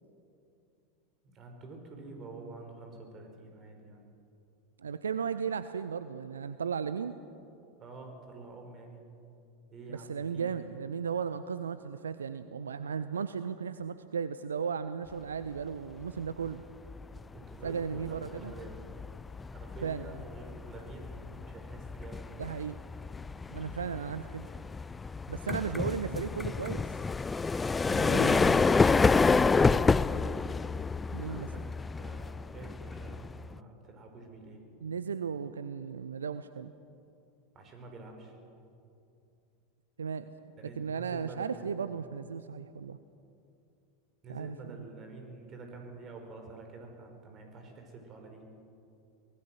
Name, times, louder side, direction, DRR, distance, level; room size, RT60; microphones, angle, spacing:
voice 1, 1.2-4.0 7.8-9.0 9.7-10.6 17.3-18.9 19.4-22.3 25.4-26.1 31.2-31.7 32.0-34.6 37.5-38.3 40.6-41.7 44.2-48.4, right 3 dB, 35° right, 3 dB, 5.1 m, -48 dB
voice 2, 4.8-7.2 9.9-16.6 17.6-18.5 19.8-20.1 22.4-22.8 23.5-24.5 25.3-26.9 27.9-28.6 31.1-31.5 34.8-36.7 40.0-40.3 40.8-43.0 44.3-44.5, right 6 dB, 75° right, 12 dB, 0.6 m, -35 dB
sound 1, 16.2-16.5 16.9-33.6, left 4 dB, 15° left, 0.5 m, -29 dB
24.0 x 20.0 x 6.4 m, 2.6 s
figure-of-eight pair, 85°, 0 cm